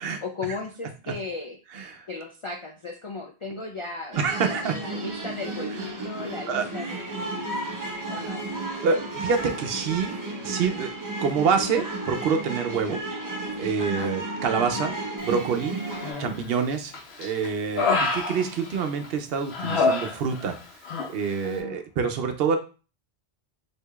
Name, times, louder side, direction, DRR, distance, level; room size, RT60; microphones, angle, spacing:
voice 1, 0.2-1.6 2.1-7.3 8.1-8.4 13.8-14.1 16.1-16.3 18.6-18.9 21.4-21.8, left 3 dB, 55° left, 2 dB, 0.3 m, -36 dB
voice 2, 1.7-2.1 4.2-4.8 6.5-6.7 8.8-10.1 10.4-10.9 11.2-13.0 13.6-15.8 16.2-16.9 17.2-20.6 21.1-22.6, right 6 dB, 70° right, 6 dB, 0.8 m, -26 dB
sound 1, 4.1-16.1, right 2 dB, 30° right, 0.4 m, -33 dB
Human voice, 15.9-16.5 16.9-19.1 19.5-20.6 20.8-21.1, left 3 dB, 75° left, 0.9 m, -27 dB
4.6 x 2.7 x 2.3 m, 0.33 s
omnidirectional pair, 1.1 m